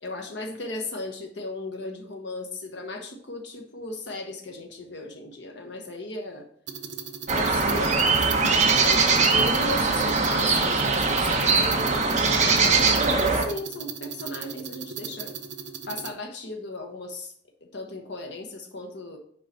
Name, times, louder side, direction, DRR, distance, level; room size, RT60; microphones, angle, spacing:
voice 1, 0.0-6.5 7.3-15.3 15.9-17.3 17.6-19.2, left 2 dB, 65° left, 2 dB, 1.0 m, -36 dB
sound 1, 6.7-16.1, right 6 dB, 65° right, 0.8 m, -37 dB
sound 2, 7.3-13.4, right 4 dB, 40° right, 0.9 m, -21 dB
6.9 x 4.8 x 4.0 m, 0.62 s
head